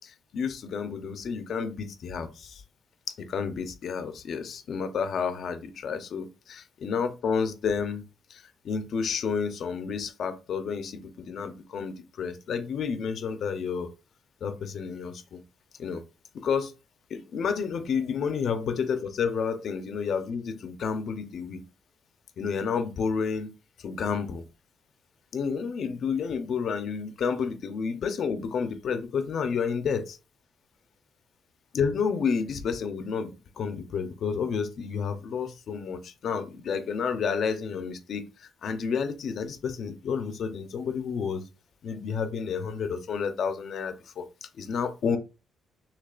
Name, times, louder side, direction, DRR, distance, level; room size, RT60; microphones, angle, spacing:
voice 1, 0.0-2.6 3.2-8.0 8.3-13.9 14.4-15.4 15.8-16.0 16.3-16.7 17.1-21.6 22.4-23.5 23.8-24.4 25.3-30.2 31.7-41.5 41.8-44.3 44.6-45.2, left 6 dB, 65° left, 0.7 m, -30 dB
6.5 x 3.1 x 2.5 m
cardioid pair, 110°, 0 cm